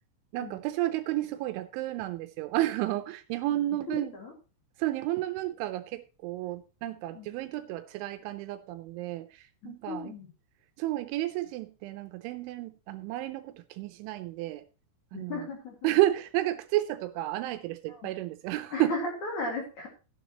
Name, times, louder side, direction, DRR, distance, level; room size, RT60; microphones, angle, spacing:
voice 1, 0.3-4.1 4.8-10.1 10.8-14.6 15.1-15.5 15.8-18.9, right 15 dB, 80° right, 10 dB, 2.9 m, -31 dB
voice 2, 3.9-4.3 7.1-7.3 9.6-10.3 15.1-15.9 17.9-18.1 18.7-19.9, left 2 dB, 50° left, 1 dB, 2.7 m, -36 dB
14.0 x 10.0 x 3.0 m, 0.32 s
omnidirectional pair, 5.7 m